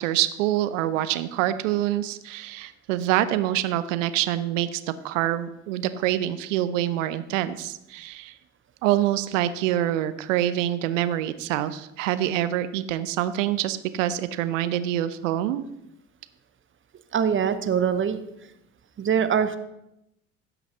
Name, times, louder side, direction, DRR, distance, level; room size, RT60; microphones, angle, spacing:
voice 1, 0.0-8.3 8.8-15.6, right 13 dB, 75° right, 13 dB, 0.7 m, -26 dB
voice 2, 17.1-18.2 19.0-19.6, right 7 dB, 30° right, 10 dB, 1.0 m, -23 dB
15.5 x 5.8 x 4.0 m, 0.84 s
figure-of-eight pair, 55°, 39 cm